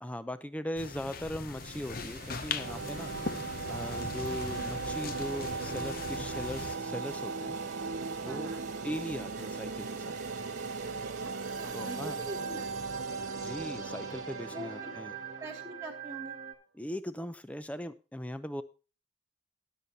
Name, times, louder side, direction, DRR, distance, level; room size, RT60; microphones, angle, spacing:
voice 1, 0.0-3.1 3.7-7.6 8.2-8.5 8.8-10.2 11.7-12.2 13.4-15.1 16.7-18.6, equal, 5° left, 13 dB, 0.6 m, -39 dB
sound 1, 0.8-6.8, left 4 dB, 45° left, 0.7 m, -40 dB
sound 2, 1.6-16.5, right 5 dB, 40° right, 1.8 m, -46 dB
sound 3, 2.6-16.1, right 4 dB, 70° right, 0.6 m, -38 dB
voice 2, 8.2-8.6 11.5-12.7 14.5-14.9 15.4-16.3, right 1 dB, 15° right, -2 dB, 1.1 m, -43 dB
20.5 x 6.9 x 2.8 m, 0.34 s
head